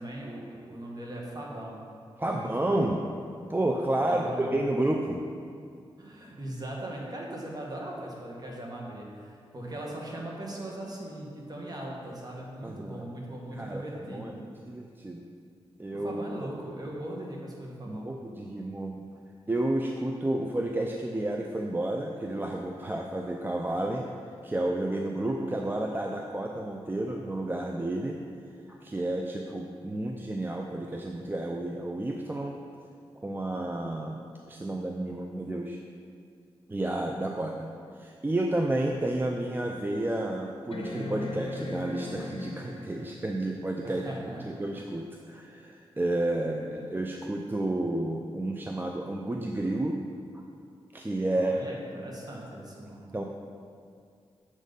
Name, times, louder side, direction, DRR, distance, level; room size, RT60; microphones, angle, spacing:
voice 1, 0.0-1.9 2.2-2.9 4.0-4.6 6.0-14.5 15.9-18.1 43.8-44.4 51.3-53.1, right 1 dB, 40° right, -2 dB, 1.6 m, -39 dB
voice 2, 2.2-3.0 3.5-5.2 12.6-13.0 13.5-15.2 15.8-16.2 17.9-19.0 19.5-24.1 24.4-28.2 28.7-32.6 33.2-34.2 34.5-35.8 36.7-37.7 38.0-44.0 44.4-50.0 50.9-51.6 53.1-53.2, right 1 dB, 20° right, 1 dB, 0.5 m, -31 dB
sound 1, 40.7-43.2 44.9-45.0, left 2 dB, 60° left, 0.9 m, -38 dB
7.3 x 4.0 x 5.3 m, 2.3 s
cardioid pair, 55°, 10 cm